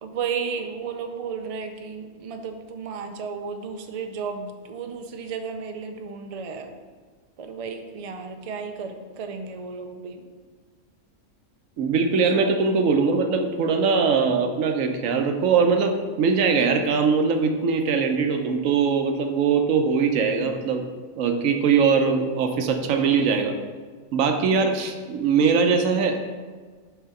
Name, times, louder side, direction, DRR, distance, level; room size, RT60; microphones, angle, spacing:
voice 1, 0.0-6.7 7.4-10.2, right 5 dB, 60° right, 5 dB, 0.3 m, -33 dB
voice 2, 11.8-20.9 21.2-23.5 24.1-26.2, right 5 dB, 90° right, 5 dB, 1.1 m, -21 dB
5.5 x 3.6 x 5.8 m, 1.5 s
omnidirectional pair, 1.3 m